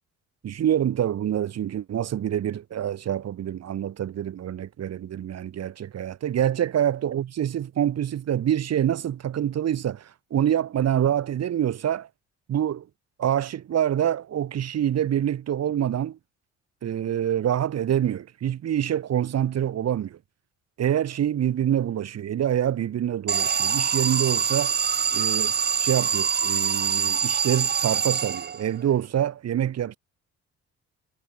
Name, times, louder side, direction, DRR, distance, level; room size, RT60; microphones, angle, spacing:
voice 1, 0.4-12.1 12.5-12.9 13.2-16.2 16.8-20.2 20.8-24.7 25.1-25.5 25.8-30.0, right 10 dB, 60° right, 1.4 m, -26 dB
Alarm, 23.3-28.8, right 7 dB, 35° right, 0.9 m, -24 dB
cardioid pair, 90°, 30 cm